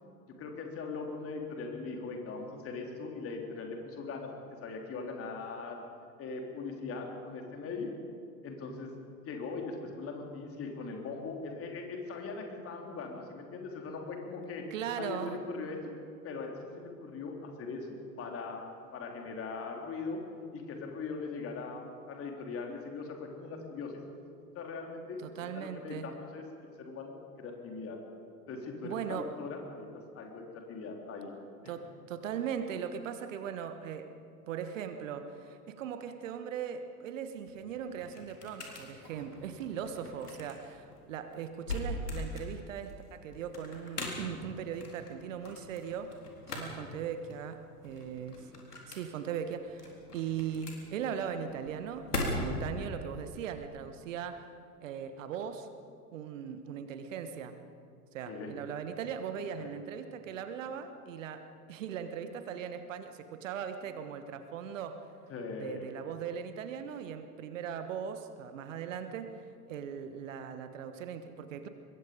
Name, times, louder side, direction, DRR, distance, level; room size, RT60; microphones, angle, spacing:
voice 1, 0.4-5.8 6.2-7.9 8.4-8.9 9.2-14.7 15.0-15.8 16.2-18.6 18.9-20.2 20.5-24.0 24.6-25.2 25.5-26.4 26.8-28.0 28.5-29.9 30.1-31.3 31.6-31.7 58.3-58.5 59.6-59.7 65.3-65.8, left 4 dB, 30° left, 2 dB, 3.5 m, -40 dB
voice 2, 14.7-15.4 25.2-26.1 28.8-29.3 31.7-34.1 34.5-46.1 46.5-48.5 48.9-54.5 54.8-55.7 56.1-57.6 58.1-65.0 65.6-71.7, right 8 dB, 55° right, 9 dB, 1.4 m, -39 dB
sound 1, 37.3-52.8, left 2 dB, 75° left, 4.0 m, -41 dB
24.5 x 21.5 x 5.3 m, 2.3 s
figure-of-eight pair, 90°, 47 cm